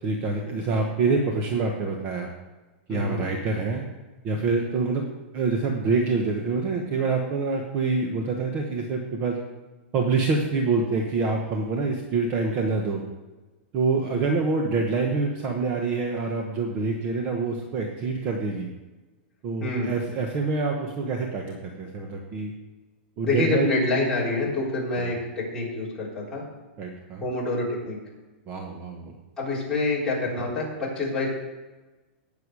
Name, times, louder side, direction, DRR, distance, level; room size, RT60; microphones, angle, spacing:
voice 1, 0.0-2.3 2.9-3.8 4.2-5.1 5.3-9.4 9.9-13.0 13.7-18.7 19.4-22.5 23.2-23.9 24.9-25.0 26.8-27.3 28.5-29.1, right 4 dB, 25° right, 2 dB, 1.1 m, -26 dB
voice 2, 2.9-3.2 19.6-19.9 23.2-26.4 27.2-28.0 29.4-31.3, left 2 dB, 10° left, -8 dB, 4.0 m, -27 dB
18.5 x 7.0 x 4.8 m, 1.2 s
supercardioid pair, 170°, 6 cm